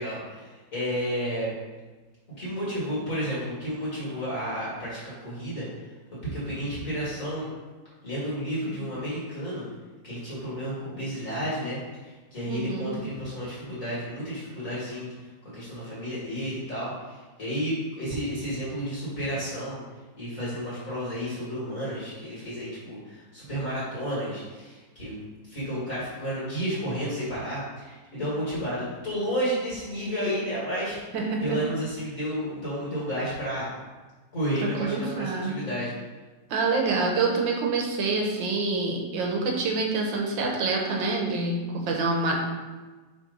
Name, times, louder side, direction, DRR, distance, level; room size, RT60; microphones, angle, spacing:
voice 1, 0.0-1.5 2.3-5.7 6.2-7.5 8.0-9.7 10.0-19.8 20.2-25.2 25.4-31.0 31.4-33.7 34.3-35.9, equal, 45° left, -8 dB, 2.2 m, -31 dB
voice 2, 12.5-13.0 31.1-31.6 34.6-35.6 36.5-42.4, right 3 dB, 70° right, 0 dB, 1.6 m, -26 dB
5.3 x 3.5 x 5.2 m, 1.3 s
omnidirectional pair, 2.1 m